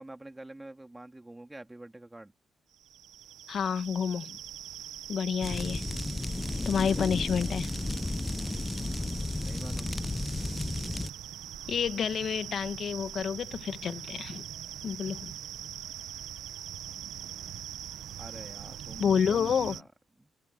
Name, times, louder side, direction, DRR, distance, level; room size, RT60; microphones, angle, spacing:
voice 1, 0.0-2.3 9.4-10.0 18.2-19.9 20.2-20.3, right 2 dB, 15° right, 2.9 m, -46 dB
sound 1, 2.7-19.8, right 10 dB, 75° right, 1.0 m, -42 dB
voice 2, 3.5-4.4 5.1-5.8 6.6-7.7 11.7-14.4 14.8-15.3 19.0-19.8, left 7 dB, 65° left, 1.5 m, -29 dB
sound 2, 5.4-11.1, left 2 dB, 20° left, 0.9 m, -33 dB
supercardioid pair, 50°, 0 cm